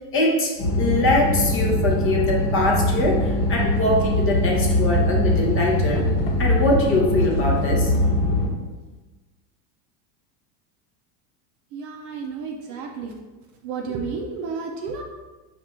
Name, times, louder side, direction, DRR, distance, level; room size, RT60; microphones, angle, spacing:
voice 1, 0.1-6.0 6.4-7.9, left 2 dB, 25° left, -1 dB, 0.7 m, -22 dB
sound 1, 0.6-8.5, left 1 dB, 50° left, 1.1 m, -22 dB
voice 2, 11.7-13.2 13.6-15.0, right 5 dB, 40° right, 2 dB, 0.5 m, -31 dB
4.8 x 2.5 x 4.3 m, 1.2 s
supercardioid pair, 140°, 48 cm